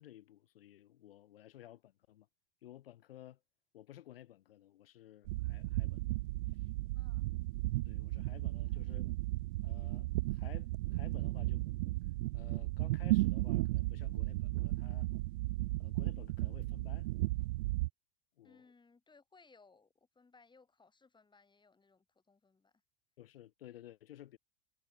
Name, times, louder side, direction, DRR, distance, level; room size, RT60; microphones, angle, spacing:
voice 1, 0.0-2.3 2.6-3.4 3.7-6.1 6.5-6.7 7.8-9.1 9.6-11.6 12.3-15.1 15.8-17.1 18.4-18.6 23.2-24.4, left 13 dB, 65° left, 1.3 m, -55 dB
sound 1, 5.3-17.9, right 20 dB, 55° right, 0.7 m, -35 dB
voice 2, 6.9-7.3 8.7-8.8 18.4-22.8, left 4 dB, 15° left, 6.0 m, -65 dB
figure-of-eight pair, 75°, 31 cm